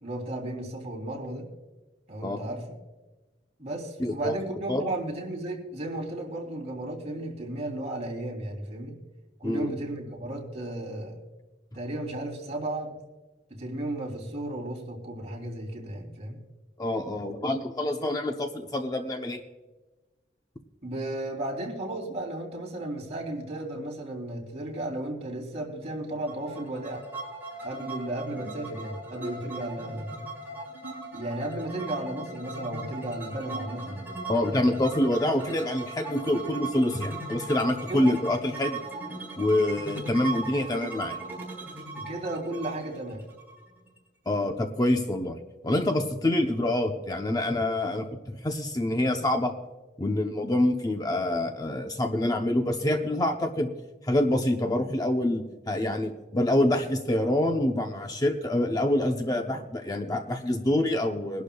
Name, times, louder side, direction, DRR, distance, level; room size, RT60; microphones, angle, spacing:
voice 1, 0.0-1.5 2.1-2.6 3.6-9.0 9.4-11.2 11.7-12.9 13.5-16.4 20.8-27.0 27.6-30.2 31.1-34.1 34.4-34.6 37.9-38.1 42.0-43.3, right 1 dB, 40° right, 0 dB, 3.1 m, -34 dB
voice 2, 4.0-4.3 4.7-4.8 9.4-9.7 16.8-19.4 34.3-38.8 39.4-41.2 44.3-45.4 45.6-49.5 50.0-53.7 54.0-61.4, left 1 dB, 20° left, 4 dB, 0.7 m, -26 dB
sound 1, 26.3-44.0, right 2 dB, 10° right, 4.7 m, -38 dB
23.0 x 11.5 x 2.3 m, 1.1 s
head